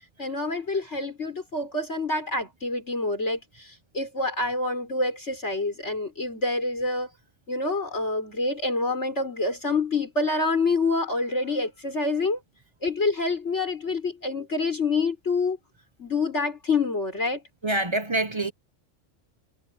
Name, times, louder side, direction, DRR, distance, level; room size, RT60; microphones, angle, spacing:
voice 1, 0.2-7.1 7.5-12.4 12.8-15.6 16.0-17.4, left 3 dB, 65° left, 5.1 m, -27 dB
voice 2, 17.6-18.5, right 2 dB, 25° right, 0.8 m, -25 dB
omnidirectional pair, 1.3 m